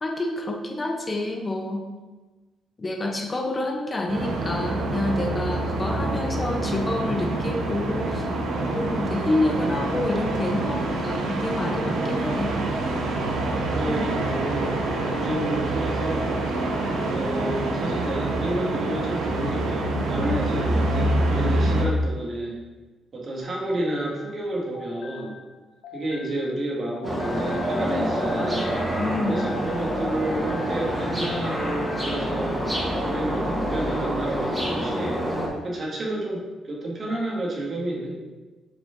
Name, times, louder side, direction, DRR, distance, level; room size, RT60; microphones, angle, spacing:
voice 1, 0.0-1.9 2.8-8.3 8.6-12.6 13.5-14.1 29.0-29.5, left 2 dB, 25° left, 2 dB, 0.9 m, -28 dB
sound 1, 4.1-21.9, right 2 dB, 80° right, 1.2 m, -26 dB
voice 2, 5.8-6.1 13.7-14.7 15.1-16.4 17.1-22.6 23.1-25.3 25.9-28.7 29.3-32.6 33.1-35.2 35.6-38.2, right 1 dB, 45° right, -3 dB, 2.0 m, -30 dB
sound 2, 23.4-26.6 26.9-31.0 31.3-32.1, left 5 dB, 85° left, 1.0 m, -44 dB
sound 3, 27.0-35.5, equal, 10° right, 2.3 m, -27 dB
7.6 x 5.0 x 3.8 m, 1.2 s
cardioid pair, 90°, 0 cm